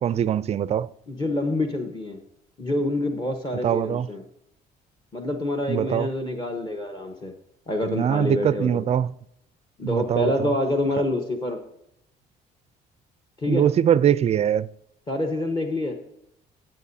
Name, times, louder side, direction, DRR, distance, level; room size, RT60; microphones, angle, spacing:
voice 1, 0.0-0.9 3.6-4.1 5.7-6.1 7.8-9.1 9.8-10.5 13.4-14.7, right 9 dB, 40° right, 0.4 m, -22 dB
voice 2, 1.1-2.2 2.6-4.2 5.1-7.3 7.7-8.8 9.8-11.6 13.4-13.6 15.1-16.0, left 1 dB, 25° left, 1.1 m, -27 dB
14.5 x 7.7 x 2.7 m
cardioid pair, 110°, 17 cm